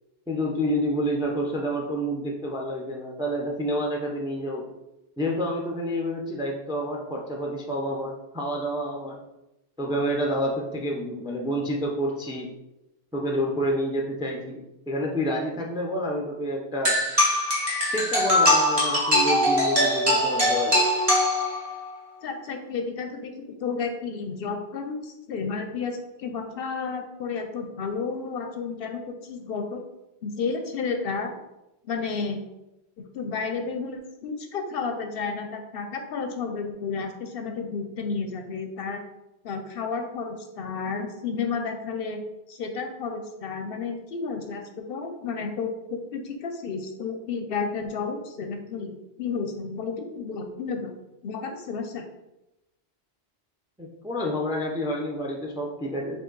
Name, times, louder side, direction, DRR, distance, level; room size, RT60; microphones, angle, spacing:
voice 1, 0.3-4.7 5.2-9.2 9.8-12.5 13.1-14.6 14.9-17.0 17.9-20.8 53.8-56.2, equal, 5° right, 0 dB, 0.3 m, -28 dB
sound 1, 16.8-21.9, left 1 dB, 30° right, 1.5 m, -22 dB
voice 2, 22.2-23.3 23.6-29.8 30.2-31.3 31.8-32.4 33.0-39.0 39.4-42.2 42.5-51.0 51.2-52.1, left 5 dB, 65° left, 5 dB, 0.7 m, -32 dB
5.1 x 2.7 x 3.8 m, 0.96 s
omnidirectional pair, 1.1 m